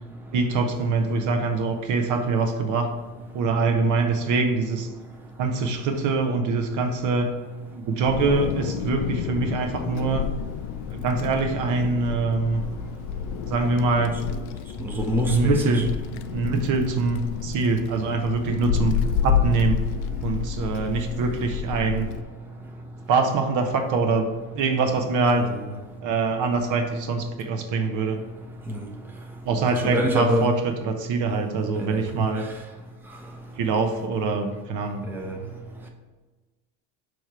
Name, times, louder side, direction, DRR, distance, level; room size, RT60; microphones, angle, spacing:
voice 1, 0.3-2.9 3.3-4.9 5.4-7.3 7.7-10.3 10.9-12.6 13.5-14.2 15.2-15.9 16.3-19.8 20.2-22.1 23.1-25.5 26.0-28.2 29.5-32.5 33.6-35.1, right 3 dB, 50° right, 5 dB, 1.0 m, -24 dB
Wind, 8.0-22.2, left 8 dB, 55° left, 0.5 m, -29 dB
voice 2, 14.8-15.5 25.4-25.6 28.7-28.8 29.9-30.5 31.9-32.0 35.1-35.4, equal, 5° right, 1 dB, 0.8 m, -25 dB
6.4 x 3.2 x 5.8 m, 1.3 s
supercardioid pair, 110°, 38 cm